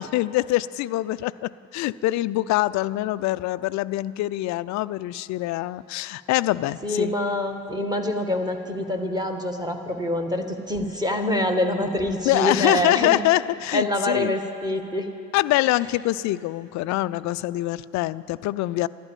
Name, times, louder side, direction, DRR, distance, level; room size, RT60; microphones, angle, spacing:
voice 1, 0.0-7.1 12.3-14.3 15.3-18.9, left 17 dB, 40° left, 15 dB, 0.4 m, -24 dB
voice 2, 6.8-13.2 13.7-15.1, left 1 dB, 10° right, 5 dB, 1.9 m, -25 dB
13.5 x 11.5 x 8.9 m, 2.5 s
figure-of-eight pair, 60°, 49 cm